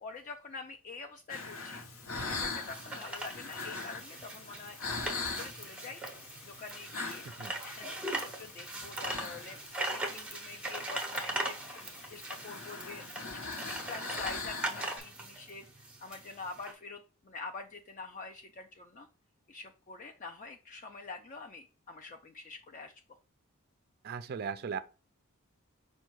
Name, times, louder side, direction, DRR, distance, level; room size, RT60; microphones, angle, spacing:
voice 1, 0.0-1.9 2.2-4.8 5.1-6.0 6.5-7.3 7.6-13.2 13.6-19.1 19.5-22.9, left 4 dB, 35° left, 0.4 m, -46 dB
sound 1, 1.3-15.0, left 4 dB, 65° left, 0.9 m, -42 dB
sound 2, 2.3-16.7, right 1 dB, 5° right, 0.6 m, -40 dB
voice 2, 24.0-24.8, right 6 dB, 45° right, 0.3 m, -37 dB
5.3 x 2.2 x 4.5 m
head